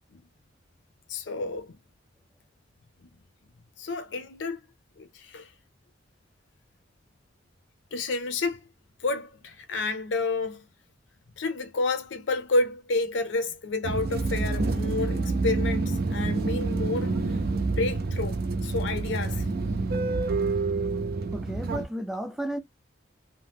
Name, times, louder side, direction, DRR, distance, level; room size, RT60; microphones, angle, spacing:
voice 1, 1.1-1.8 3.0-3.1 3.8-4.6 5.0-5.5 7.9-8.7 9.0-10.6 11.4-19.5, left 3 dB, 70° left, 0.5 m, -30 dB
sound 1, 13.8-21.8, right 3 dB, 55° right, 0.5 m, -27 dB
voice 2, 21.3-22.6, right 1 dB, ahead, 0.4 m, -33 dB
2.8 x 2.1 x 3.3 m
head